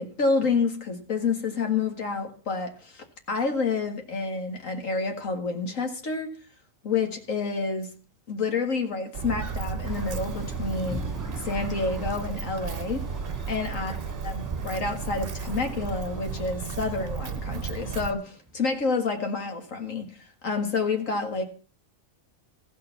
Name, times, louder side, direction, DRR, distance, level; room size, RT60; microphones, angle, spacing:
voice 1, 0.0-6.3 6.8-7.9 8.3-11.0 11.4-13.1 13.5-21.4, left 4 dB, 75° left, 4 dB, 2.1 m, -29 dB
Walk footsteps, 9.1-18.1, right 6 dB, 50° right, 1.1 m, -33 dB
sound 1, 9.8-18.9, right 1 dB, 15° right, 2.2 m, -43 dB
14.5 x 6.7 x 6.8 m, 0.39 s
omnidirectional pair, 1.4 m